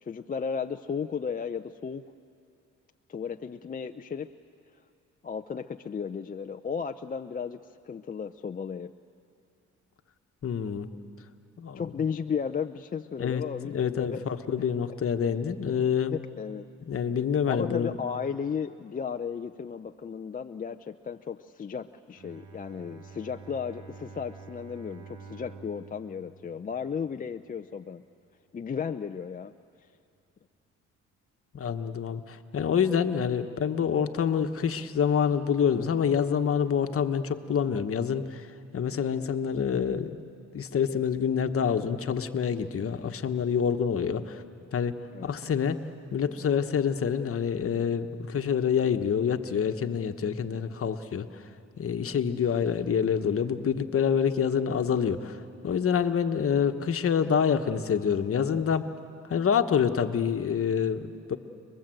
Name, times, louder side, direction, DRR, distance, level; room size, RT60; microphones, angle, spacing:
voice 1, 0.0-2.0 3.1-4.3 5.2-8.9 11.7-14.2 14.6-14.7 15.7-15.8 16.1-16.7 17.4-28.0 28.5-29.5 45.1-45.3, left 6 dB, 30° left, 7 dB, 0.6 m, -34 dB
voice 2, 10.4-10.9 11.6-11.8 13.2-16.1 16.8-17.9 31.5-38.5 38.7-40.2 40.5-44.4 44.7-44.9 45.2-45.8 46.1-51.4 51.8-58.8 59.3-61.4, left 7 dB, 50° left, 8 dB, 1.3 m, -27 dB
Bowed string instrument, 22.1-27.4, right 5 dB, 75° right, 2.2 m, -48 dB
29.5 x 21.0 x 7.8 m, 2.4 s
cardioid pair, 90°, 30 cm